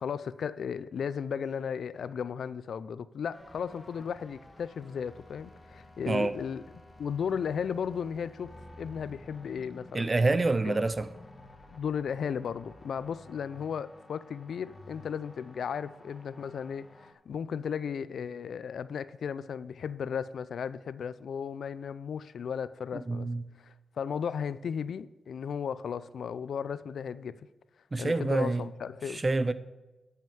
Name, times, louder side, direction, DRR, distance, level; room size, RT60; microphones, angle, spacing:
voice 1, 0.0-6.6 7.0-10.1 10.6-10.8 11.7-23.3 23.6-27.4 28.0-29.2, left 7 dB, 75° left, 0.4 m, -35 dB
sound 1, 3.3-17.1, left 2 dB, 20° left, 1.2 m, -52 dB
voice 2, 9.9-11.1 23.1-23.4 27.9-28.6 29.1-29.5, right 3 dB, 25° right, 0.6 m, -27 dB
10.5 x 5.7 x 7.1 m
cardioid pair, 100°, 0 cm